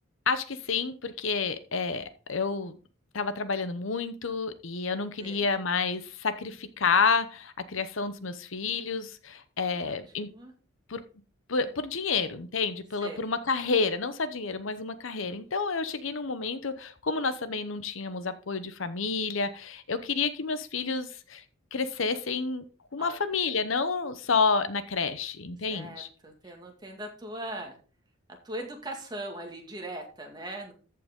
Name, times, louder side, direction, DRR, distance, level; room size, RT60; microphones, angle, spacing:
voice 1, 0.3-2.8 3.1-10.3 10.9-11.0 11.5-21.4 21.7-22.6 22.9-26.1, left 4 dB, 70° left, 12 dB, 0.8 m, -29 dB
voice 2, 9.6-10.5 13.0-13.2 23.0-23.2 25.7-27.7 28.4-30.7, right 1 dB, 20° right, 2 dB, 2.0 m, -40 dB
14.0 x 5.7 x 3.7 m, 0.37 s
head